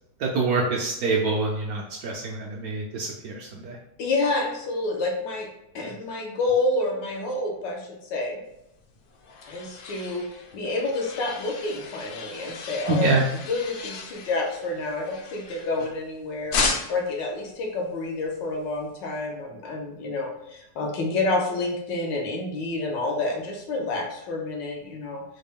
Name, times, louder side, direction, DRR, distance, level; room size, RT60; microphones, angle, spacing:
voice 1, 0.2-3.8 12.9-13.2, right 3 dB, 70° right, 0 dB, 0.9 m, -25 dB
voice 2, 4.0-5.5 5.7-8.4 9.5-13.1 13.5-16.6 16.9-25.2, left 2 dB, 85° left, 0 dB, 1.4 m, -28 dB
sound 1, 8.8-16.1 16.5-17.2, left 4 dB, 70° left, 1.0 m, -34 dB
4.0 x 2.1 x 3.5 m, 0.85 s
omnidirectional pair, 1.9 m